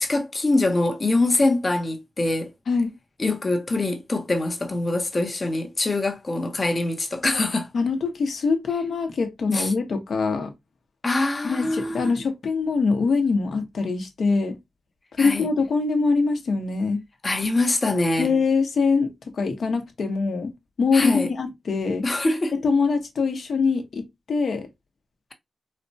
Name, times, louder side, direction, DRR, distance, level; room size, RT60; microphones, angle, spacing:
voice 1, 0.0-2.5 3.2-7.7 9.5-9.7 11.0-12.1 15.2-15.5 17.2-18.3 20.9-21.3 22.0-22.6, left 2 dB, 35° left, 0.8 m, -24 dB
voice 2, 7.7-10.5 11.4-14.6 15.2-17.0 18.2-19.1 19.4-20.5 20.8-22.0 22.5-24.7, left 4 dB, 70° left, 0.9 m, -23 dB
4.2 x 2.2 x 2.7 m
wide cardioid pair, 95°, 0 cm